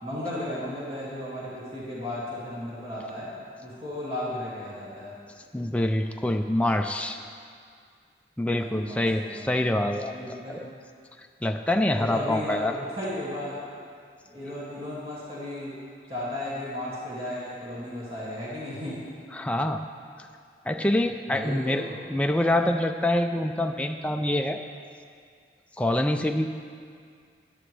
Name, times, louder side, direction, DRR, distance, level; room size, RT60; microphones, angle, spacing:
voice 1, 0.0-3.3 3.6-5.1 8.6-9.5 10.1-10.6 11.9-13.6 14.3-15.8 16.1-19.0 21.3-22.0, left 1 dB, 30° right, -8 dB, 2.3 m, -35 dB
voice 2, 5.5-7.2 8.4-10.1 10.5-10.7 11.4-12.7 19.3-19.8 20.7-24.6 25.8-26.6, left 1 dB, 5° left, 4 dB, 0.3 m, -25 dB
13.0 x 11.0 x 3.3 m, 2.2 s
head